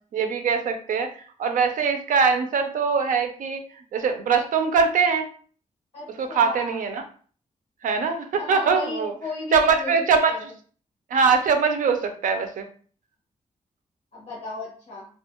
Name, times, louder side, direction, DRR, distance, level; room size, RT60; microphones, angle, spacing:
voice 1, 0.1-3.6 3.9-5.3 6.2-7.0 7.8-9.2 9.5-10.5 11.1-12.7, right 5 dB, 85° right, 6 dB, 0.5 m, -22 dB
voice 2, 5.9-6.8 8.3-9.9 10.3-10.5 14.1-15.1, left 3 dB, 50° left, -6 dB, 0.9 m, -34 dB
2.4 x 2.3 x 2.9 m, 0.43 s
wide cardioid pair, 145°, 13 cm